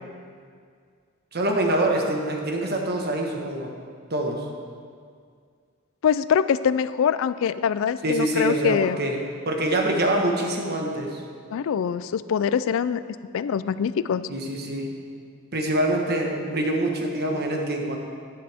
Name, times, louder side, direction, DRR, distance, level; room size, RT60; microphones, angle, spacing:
voice 1, 1.3-3.7 4.1-4.4 8.0-9.2 9.4-11.2 14.3-14.9 15.5-18.0, right 1 dB, 50° right, 1 dB, 1.3 m, -25 dB
voice 2, 6.0-9.0 11.5-13.0 13.3-14.2, left 7 dB, 65° left, 15 dB, 0.3 m, -23 dB
11.5 x 10.0 x 3.5 m, 2.1 s
head